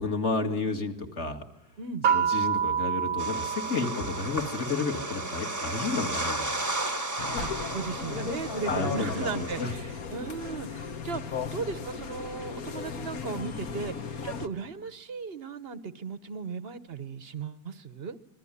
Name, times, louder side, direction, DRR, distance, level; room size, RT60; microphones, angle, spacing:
voice 1, 0.0-1.4 2.1-6.5 8.7-9.7, left 3 dB, 40° left, 5 dB, 2.5 m, -31 dB
sound 1, 2.0-4.8, right 8 dB, 90° right, 1.8 m, -28 dB
sound 2, 3.2-9.6, right 2 dB, 10° right, 1.1 m, -34 dB
sound 3, 7.2-14.5, left 6 dB, 55° left, 1.6 m, -36 dB
voice 2, 7.4-11.2 11.5-14.0 14.2-18.2, right 5 dB, 40° right, 13 dB, 1.1 m, -36 dB
26.0 x 22.0 x 9.9 m, 1.0 s
omnidirectional pair, 1.9 m